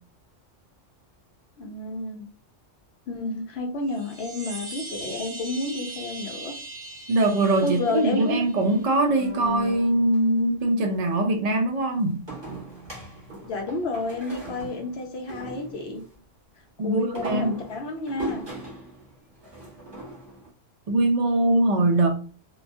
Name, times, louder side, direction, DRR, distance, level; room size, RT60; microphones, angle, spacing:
voice 1, 1.6-2.3 3.1-6.5 7.6-8.4 13.4-16.0 16.8-18.4, left 2 dB, 65° left, 0.7 m, -30 dB
sound 1, 3.8-8.9, right 2 dB, 65° right, 1.2 m, -40 dB
voice 2, 7.1-12.2 16.8-17.5 20.9-22.1, right 2 dB, 80° right, 0.3 m, -22 dB
sound 2, 8.3-10.2 12.3-16.1 16.9-20.5, equal, 20° right, 1.1 m, -39 dB
2.9 x 2.2 x 2.5 m
omnidirectional pair, 1.3 m